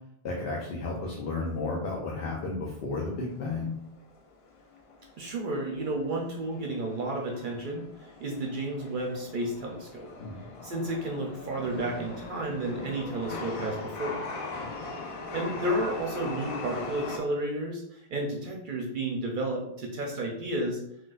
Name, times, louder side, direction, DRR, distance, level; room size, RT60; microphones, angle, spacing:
voice 1, 0.2-3.7 10.2-10.5 14.6-14.7, left 3 dB, 70° left, -2 dB, 0.8 m, -33 dB
Chatter / Subway metro underground, 3.0-17.2, left 3 dB, 55° left, 0.4 m, -40 dB
voice 2, 5.2-10.1 10.6-14.3 15.3-20.8, right 1 dB, 60° right, -1 dB, 0.6 m, -32 dB
3.9 x 2.2 x 2.4 m, 0.75 s
omnidirectional pair, 1.0 m